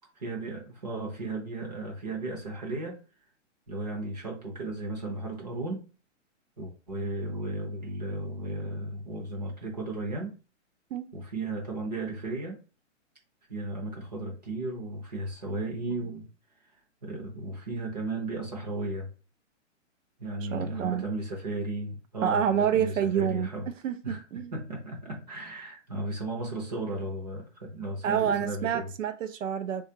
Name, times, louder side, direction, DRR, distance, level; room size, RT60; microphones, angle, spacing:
voice 1, 0.2-3.0 3.7-5.9 6.6-10.4 11.1-12.6 13.5-16.3 17.0-19.1 20.2-23.7 24.0-24.2 24.5-28.9, right 2 dB, 35° right, 0.7 m, -35 dB
voice 2, 20.4-21.0 22.2-24.5 28.0-29.8, right 9 dB, 80° right, 0.6 m, -28 dB
3.8 x 2.4 x 2.7 m
hypercardioid pair, 180°, 38 cm